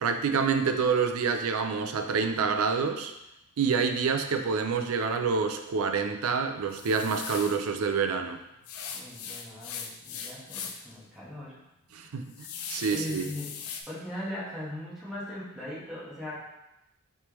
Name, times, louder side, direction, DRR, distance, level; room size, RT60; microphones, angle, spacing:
voice 1, 0.0-3.1 3.6-8.4 11.9-13.3, right 5 dB, 75° right, 7 dB, 0.4 m, -27 dB
sound 1, 6.7-7.6 8.7-10.9 11.3-11.4 11.9-13.8, left 7 dB, 80° left, 0.4 m, -40 dB
voice 2, 8.9-11.6 12.8-16.4, left 1 dB, ahead, -9 dB, 1.4 m, -39 dB
4.5 x 3.3 x 3.0 m, 0.89 s
head